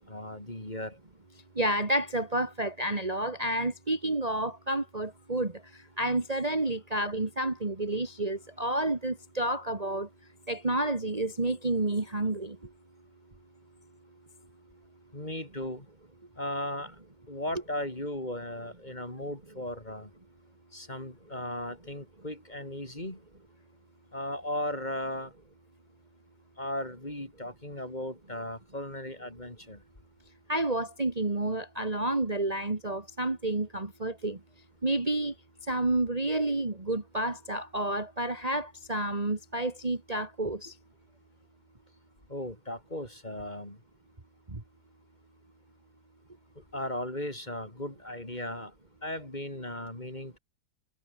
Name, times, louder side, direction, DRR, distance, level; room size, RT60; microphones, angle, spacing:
voice 1, 0.1-1.0 15.1-15.8 16.4-16.9 17.3-20.1 20.7-23.2 24.1-25.3 26.6-29.8 42.3-43.8 46.7-48.7 49.0-50.4, left 1 dB, 25° left, 5.1 m, -36 dB
voice 2, 1.6-5.5 6.0-10.1 10.5-12.6 30.5-34.4 34.8-35.3 35.7-40.7, right 1 dB, 20° right, 2.3 m, -30 dB
omnidirectional pair, 1.9 m